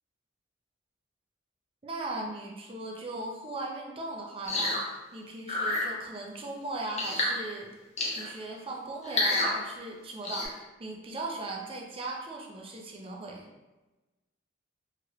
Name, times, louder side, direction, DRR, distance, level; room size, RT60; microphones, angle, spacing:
voice 1, 1.8-7.7 8.1-13.5, right 2 dB, 30° right, 0 dB, 0.4 m, -38 dB
sound 1, 4.5-4.8 5.5-5.9 7.0-7.3 8.0-8.3 9.0-9.5 10.2-10.5, left 2 dB, 35° left, 0.7 m, -28 dB
3.0 x 2.9 x 2.5 m, 1.1 s
head